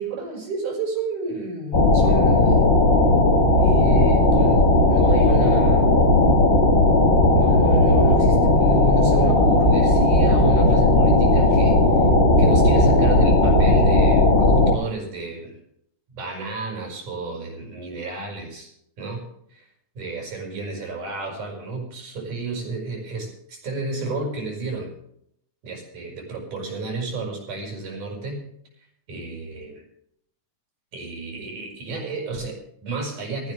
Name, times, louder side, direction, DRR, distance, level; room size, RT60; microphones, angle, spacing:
voice 1, 0.0-2.7 3.6-6.1 7.4-12.1 12.4-15.6 16.1-18.7 19.0-19.7 19.9-24.9 25.6-28.4 29.1-29.8 30.9-33.5, right 3 dB, 80° right, 1 dB, 6.5 m, -31 dB
sound 1, 1.7-14.8, left 2 dB, 45° left, 0.7 m, -16 dB
19.0 x 14.0 x 3.3 m, 0.69 s
omnidirectional pair, 3.5 m